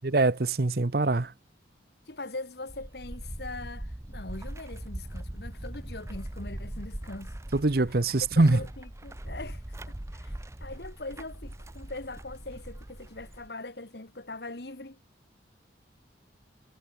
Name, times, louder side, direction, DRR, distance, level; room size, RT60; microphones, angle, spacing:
voice 1, 0.0-1.3 7.5-8.6, right 2 dB, 55° right, 0.9 m, -23 dB
voice 2, 2.1-7.3 8.1-10.3 10.6-15.0, left 2 dB, 60° left, 1.9 m, -41 dB
sound 1, 2.7-13.5, right 1 dB, 15° right, 0.7 m, -41 dB
head